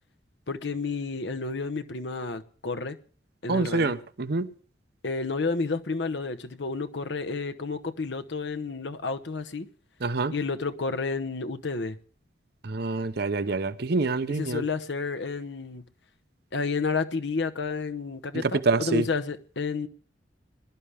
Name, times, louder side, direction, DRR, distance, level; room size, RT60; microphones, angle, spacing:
voice 1, 0.5-3.0 3.4-3.9 5.0-9.7 10.3-12.0 14.3-15.8 16.5-19.9, left 4 dB, 70° left, 1.0 m, -31 dB
voice 2, 3.5-4.5 10.0-10.3 12.6-14.6 18.3-19.1, right 3 dB, 60° right, 0.8 m, -26 dB
21.0 x 11.5 x 3.5 m
head